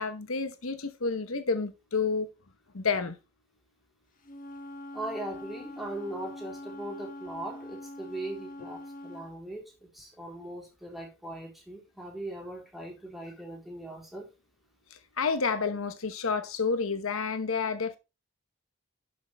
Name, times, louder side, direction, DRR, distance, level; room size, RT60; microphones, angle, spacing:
voice 1, 0.0-2.3 2.7-3.1 14.9-18.0, left 5 dB, 80° left, 1.0 m, -30 dB
Wind instrument woodwind instrument, 4.2-9.3, left 1 dB, 40° left, 1.4 m, -43 dB
voice 2, 4.9-14.3, right 1 dB, ahead, 3.9 m, -40 dB
11.5 x 6.3 x 3.4 m
head